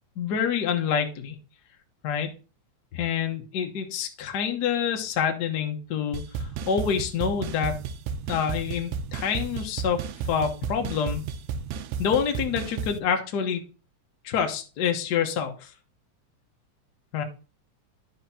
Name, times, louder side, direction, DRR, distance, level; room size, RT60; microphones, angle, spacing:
voice 1, 0.2-1.4 2.0-2.3 2.9-7.8 8.3-10.0 10.3-11.3 12.0-13.6 14.2-15.7 17.1-17.2, left 7 dB, 75° left, 4 dB, 0.9 m, -27 dB
sound 1, 6.1-13.0, right 6 dB, 85° right, 2.0 m, -33 dB
12.0 x 4.9 x 2.8 m, 0.34 s
omnidirectional pair, 3.4 m